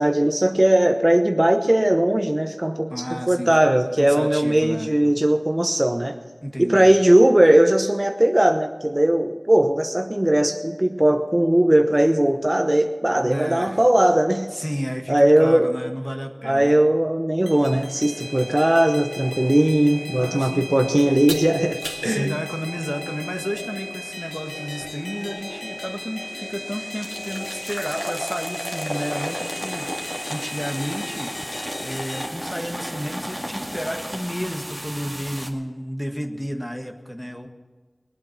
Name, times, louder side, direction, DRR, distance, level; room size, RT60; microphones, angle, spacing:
voice 1, 0.0-6.2 6.6-14.5 15.1-15.7 16.4-22.4, right 1 dB, 30° right, 5 dB, 1.0 m, -19 dB
voice 2, 2.9-3.5 4.0-4.9 6.4-6.9 13.2-13.8 14.5-16.7 20.2-20.7 22.0-37.5, equal, 15° left, 4 dB, 1.7 m, -32 dB
sound 1, 17.5-32.3, left 1 dB, 70° left, 1.5 m, -35 dB
sound 2, 21.3-21.5 21.8-22.1 24.8-24.9 25.4-25.5 27.0-35.5, equal, ahead, 2.2 m, -33 dB
21.5 x 8.5 x 5.9 m, 1.4 s
wide cardioid pair, 45°, 0 cm